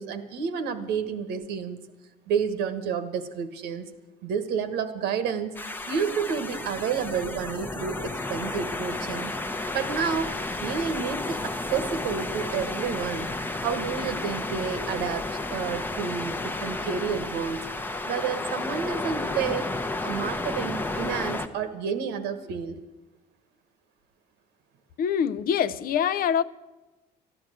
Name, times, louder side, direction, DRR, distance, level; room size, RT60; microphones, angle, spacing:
voice 1, 0.0-1.8 2.3-3.9 4.2-5.5 5.9-9.3 9.7-10.3 10.6-13.3 13.6-17.6 18.1-19.7 20.0-22.8, right 6 dB, 90° right, 1.3 m, -30 dB
sound 1, 5.5-21.5, left 2 dB, 10° left, 0.7 m, -32 dB
voice 2, 25.0-26.4, left 8 dB, 60° left, 0.6 m, -24 dB
13.5 x 10.5 x 7.9 m
cardioid pair, 110°, 17 cm